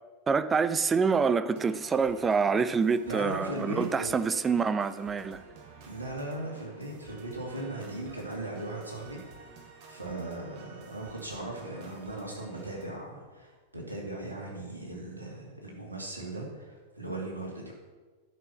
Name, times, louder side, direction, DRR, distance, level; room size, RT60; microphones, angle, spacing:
voice 1, 0.3-5.4, right 5 dB, 15° right, 0.4 m, -26 dB
sound 1, 1.5-12.8, right 4 dB, 45° right, 1.6 m, -51 dB
voice 2, 3.1-4.2 5.9-17.7, right 1 dB, 80° right, 2.5 m, -38 dB
11.0 x 6.2 x 5.8 m
figure-of-eight pair, 90°, 0 cm